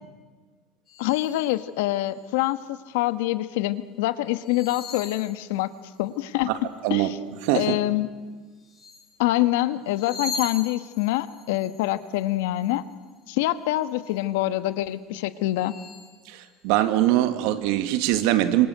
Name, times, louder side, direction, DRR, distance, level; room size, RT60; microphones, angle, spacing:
Earie object of power, 0.9-1.5 2.0-2.7 4.3-6.0 8.6-9.1 9.8-13.3 13.7-14.2 14.7-14.8 15.3-16.1, left 3 dB, 25° left, 8.0 m, -40 dB
voice 1, 1.0-5.7 6.0-6.5 6.9-7.2 7.5-8.1 9.2-12.8 13.3-15.7, left 16 dB, 90° left, 12 dB, 1.4 m, -25 dB
voice 2, 7.4-7.7 16.3-18.7, right 14 dB, 70° right, 9 dB, 2.3 m, -22 dB
27.0 x 26.5 x 8.1 m, 1.4 s
cardioid pair, 160°, 0 cm